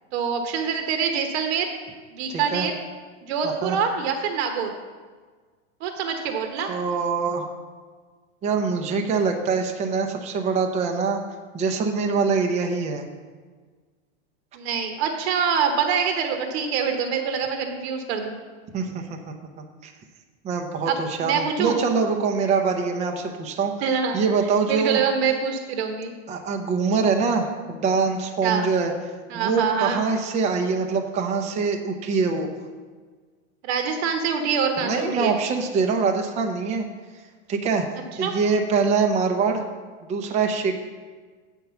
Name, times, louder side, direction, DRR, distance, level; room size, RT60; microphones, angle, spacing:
voice 1, 0.1-1.7 2.1-2.7 3.2-4.7 5.8-6.7 14.5-18.3 20.9-21.8 23.8-24.2 24.7-26.1 28.4-28.7 29.3-30.0 33.6-35.4 38.2-38.3, right 6 dB, 60° right, 5 dB, 1.1 m, -25 dB
voice 2, 2.3-2.7 3.4-3.8 6.6-7.5 8.4-11.2 11.5-13.0 18.7-19.2 19.6-19.9 20.4-23.7 24.1-25.0 26.3-28.9 29.3-32.5 34.8-36.9 37.5-37.9 38.2-39.6 40.1-40.8, right 5 dB, 20° right, 4 dB, 0.6 m, -24 dB
8.5 x 4.6 x 6.8 m, 1.5 s
supercardioid pair, 150°, 36 cm